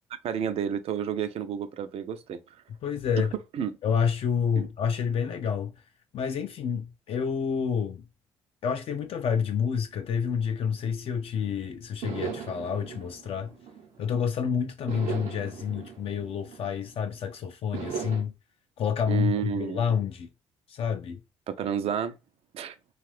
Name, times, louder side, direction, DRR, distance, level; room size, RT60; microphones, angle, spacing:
voice 1, 0.2-2.4 3.5-3.7 4.6-4.7 19.1-19.8 21.5-22.2 22.5-22.8, right 8 dB, 65° right, 0.4 m, -30 dB
voice 2, 2.8-3.3 3.8-5.7 6.1-8.0 8.6-13.5 14.0-18.3 18.8-20.3 20.7-21.2, left 7 dB, 60° left, 0.4 m, -28 dB
sound 1, 12.0-14.3 14.9-17.1 17.7-18.2, right 6 dB, 85° right, 0.8 m, -38 dB
2.5 x 2.3 x 3.2 m
supercardioid pair, 65°, 11 cm